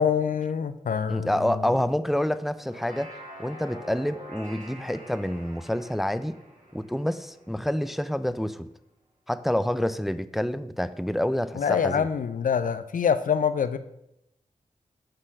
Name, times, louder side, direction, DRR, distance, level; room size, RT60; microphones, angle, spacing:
voice 1, 0.0-1.6 11.6-13.8, left 7 dB, 70° left, 12 dB, 0.5 m, -25 dB
voice 2, 1.1-3.1 3.4-6.4 6.7-8.7 9.3-12.1, left 1 dB, ahead, 13 dB, 0.4 m, -28 dB
sound 1, 2.5-8.0, equal, 70° right, 2.1 m, -46 dB
6.6 x 3.8 x 6.1 m, 0.82 s
cardioid pair, 45°, 14 cm